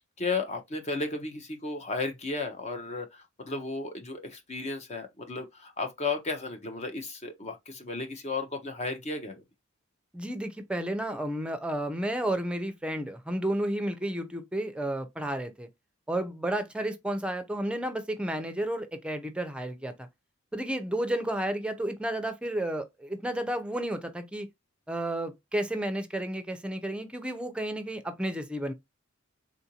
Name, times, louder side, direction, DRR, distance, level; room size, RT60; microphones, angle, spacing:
voice 1, 0.2-9.4, left 3 dB, 35° left, 0.7 m, -34 dB
voice 2, 10.1-15.7 16.1-20.1 20.5-24.5 24.9-28.7, right 1 dB, 5° right, 0.5 m, -32 dB
3.6 x 2.5 x 2.7 m
head